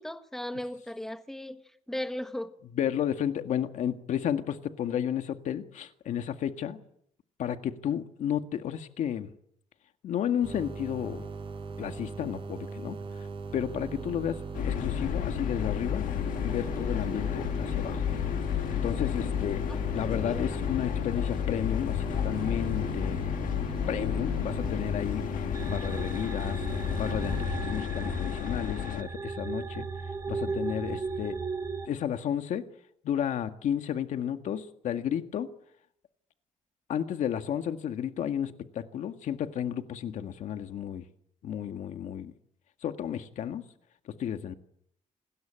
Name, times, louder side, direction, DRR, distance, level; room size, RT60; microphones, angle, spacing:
voice 1, 0.0-1.6 1.9-2.5 19.7-20.5 30.5-30.6 30.9-31.0, left 1 dB, 5° left, 1.4 m, -37 dB
voice 2, 2.7-6.8 7.4-9.3 10.0-11.3 11.8-13.0 13.5-16.1 16.4-18.1 18.7-19.6 19.9-23.3 23.9-25.3 25.7-26.6 26.9-29.9 30.3-31.4 31.9-32.7 33.0-35.5 36.9-41.1 41.4-42.3 42.8-43.7 44.1-44.5, left 9 dB, 65° left, 1.8 m, -32 dB
sound 1, 10.4-27.5, right 5 dB, 40° right, 5.4 m, -39 dB
sound 2, 14.5-29.0, left 11 dB, 85° left, 1.7 m, -32 dB
sound 3, 25.5-31.9, right 4 dB, 25° right, 2.3 m, -36 dB
27.5 x 20.5 x 8.9 m
cardioid pair, 175°, 13 cm